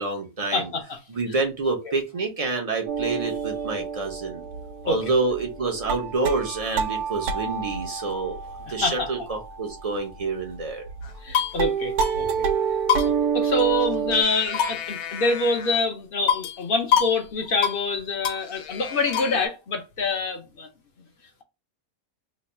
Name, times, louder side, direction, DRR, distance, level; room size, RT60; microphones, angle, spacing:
voice 1, 0.0-0.7 1.1-4.4 4.8-8.4 8.7-10.9 12.2-12.3, right 3 dB, 40° right, 0.5 m, -27 dB
voice 2, 0.5-1.0 1.3-1.4 1.8-1.9 4.9-5.1 8.7-9.1 11.2-12.5 13.0-20.7, left 2 dB, 50° left, 0.7 m, -26 dB
sound 1, 2.9-11.3 11.6-14.2, right 6 dB, 90° right, 1.1 m, -29 dB
sound 2, 11.0-11.6 12.0-12.2 12.4-12.5 12.9-13.9 14.1-15.8 16.3-16.6 16.9-17.2 17.4-17.8 18.2-19.5, left 8 dB, 75° left, 1.1 m, -26 dB
3.1 x 2.2 x 4.2 m
omnidirectional pair, 1.6 m